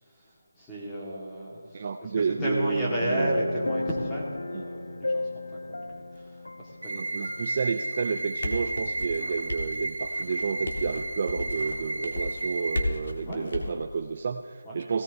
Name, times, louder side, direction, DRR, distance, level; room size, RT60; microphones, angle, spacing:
voice 1, 0.1-2.1 2.4-7.0 7.3-7.4 13.2-13.8 14.6-14.8, right 1 dB, 5° left, -7 dB, 1.6 m, -33 dB
voice 2, 1.7-3.3 4.5-4.6 6.9-15.0, right 5 dB, 25° right, 6 dB, 0.3 m, -30 dB
sound 1, 2.4-7.8 8.1-8.3, left 2 dB, 80° left, 0.5 m, -35 dB
sound 2, 6.8-12.8, right 2 dB, 70° right, 1.4 m, -33 dB
sound 3, 8.2-13.7, left 2 dB, 45° left, 1.6 m, -35 dB
17.5 x 16.5 x 2.6 m, 2.1 s
figure-of-eight pair, 175°, 0 cm